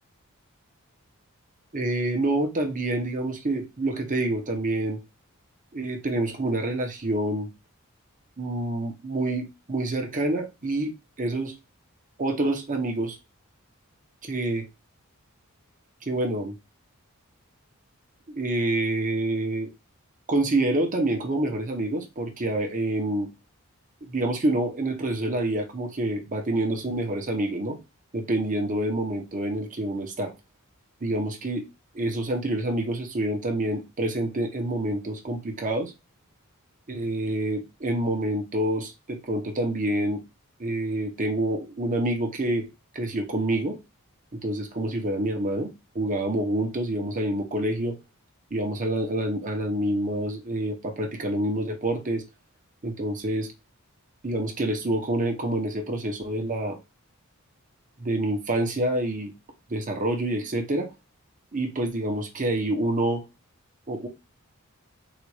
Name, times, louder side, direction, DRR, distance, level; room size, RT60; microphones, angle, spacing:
voice 1, 1.7-5.0 5.7-7.5 8.4-11.5 12.2-13.2 14.2-14.7 16.0-16.6 18.3-19.7 20.3-23.3 24.0-27.8 28.1-30.3 31.0-31.6 31.9-35.9 36.9-40.2 40.6-42.7 42.9-43.8 44.3-48.0 48.5-52.2 52.8-53.5 54.2-56.8 58.0-59.3 59.7-60.9 61.5-63.2 63.9-64.1, right 1 dB, 35° right, 0.9 m, -27 dB
4.0 x 2.5 x 4.8 m
head